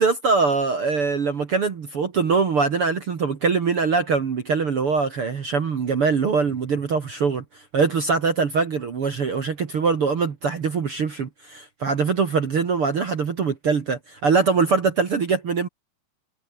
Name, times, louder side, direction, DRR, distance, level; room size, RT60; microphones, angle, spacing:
voice 1, 0.0-15.7, right 5 dB, 45° right, 2.1 m, -23 dB
omnidirectional pair, 4.6 m